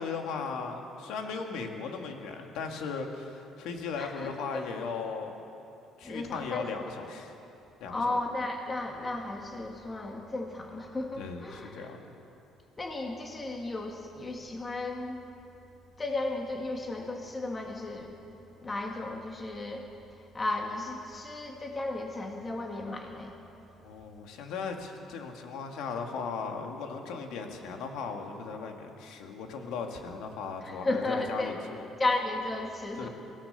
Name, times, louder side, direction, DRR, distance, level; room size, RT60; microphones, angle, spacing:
voice 1, 0.0-5.4 6.0-7.4 7.8-8.1 11.2-12.0 23.8-31.9 33.0-33.1, left 5 dB, 80° left, 3 dB, 2.3 m, -37 dB
voice 2, 4.0-4.6 6.0-6.7 7.9-11.9 12.8-15.2 16.0-18.1 18.6-23.4 30.6-31.5 32.0-33.1, left 2 dB, 20° left, 2 dB, 2.0 m, -34 dB
23.5 x 16.5 x 6.9 m, 2.8 s
cardioid pair, 125°, 0 cm